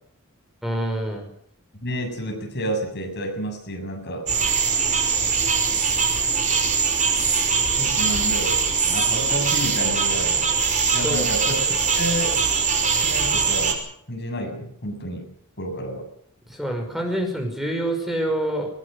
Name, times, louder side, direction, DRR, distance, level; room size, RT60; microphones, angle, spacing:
voice 1, 0.6-1.3 11.0-11.2 16.5-18.7, right 1 dB, ahead, 3 dB, 5.6 m, -26 dB
voice 2, 1.8-4.3 7.8-8.6 8.8-10.5 10.9-12.4 12.9-13.8 14.1-15.3 15.6-16.1, equal, 50° left, 3 dB, 7.5 m, -30 dB
sound 1, 4.3-13.7, right 5 dB, 35° right, 5.8 m, -22 dB
22.0 x 22.0 x 6.8 m, 0.68 s
head